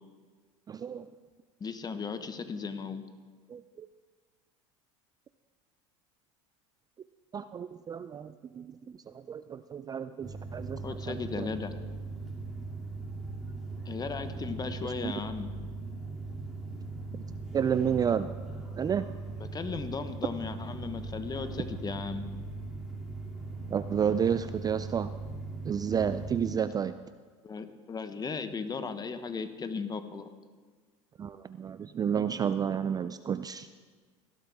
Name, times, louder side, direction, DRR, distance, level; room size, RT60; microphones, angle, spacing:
voice 1, 0.7-1.1 3.5-3.9 7.3-9.0 9.3-11.5 14.8-15.1 17.5-18.3 18.8-19.1 23.7-25.1 25.6-26.9 31.2-33.7, right 8 dB, 25° right, 12 dB, 0.4 m, -31 dB
voice 2, 1.6-3.1 10.8-11.8 13.8-15.5 19.4-22.3 27.4-30.3, left 5 dB, 25° left, 10 dB, 1.1 m, -36 dB
sound 1, 10.2-26.5, right 3 dB, ahead, 2.8 m, -39 dB
17.5 x 12.0 x 3.5 m, 1.5 s
hypercardioid pair, 85°, 16 cm